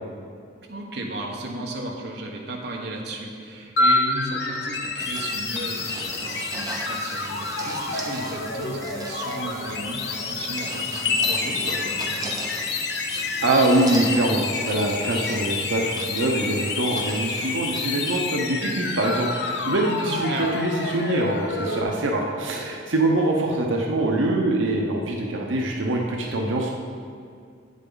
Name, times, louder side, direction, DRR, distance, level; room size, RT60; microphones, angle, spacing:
voice 1, 0.7-12.4 20.0-20.5, right 2 dB, 55° right, 0 dB, 1.0 m, -35 dB
sound 1, 3.8-21.8, left 3 dB, 60° left, 0.7 m, -28 dB
sound 2, 5.0-18.4, right 2 dB, 20° right, 0.6 m, -38 dB
voice 2, 13.4-26.8, right 1 dB, 85° right, 0 dB, 0.8 m, -24 dB
8.2 x 7.4 x 3.9 m, 2.3 s
head